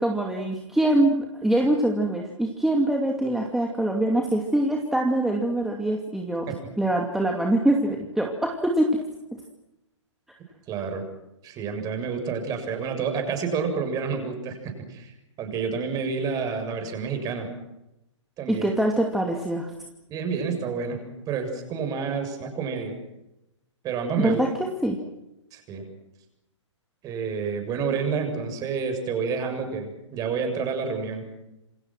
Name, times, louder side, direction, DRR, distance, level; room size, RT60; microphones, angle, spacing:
voice 1, 0.0-6.5 6.8-9.0 18.5-19.7 24.2-24.5 24.8-25.0, right 1 dB, ahead, 1 dB, 2.5 m, -24 dB
voice 2, 10.7-11.0 11.4-15.1 15.4-17.5 18.4-18.7 20.1-21.0 21.3-22.9 23.8-24.4 25.5-25.9 27.0-31.2, right 5 dB, 25° right, 5 dB, 7.1 m, -29 dB
28.5 x 26.0 x 6.2 m, 0.91 s
figure-of-eight pair, 125°, 16 cm